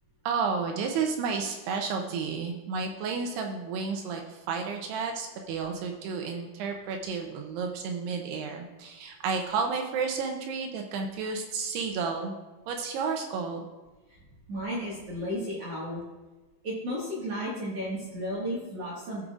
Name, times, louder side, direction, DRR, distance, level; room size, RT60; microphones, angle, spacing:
voice 1, 0.3-12.3 12.7-13.6, right 5 dB, 80° right, 3 dB, 2.5 m, -31 dB
voice 2, 14.5-16.0 16.6-19.2, equal, 55° right, -7 dB, 1.8 m, -33 dB
16.0 x 6.4 x 2.4 m, 1.2 s
omnidirectional pair, 5.3 m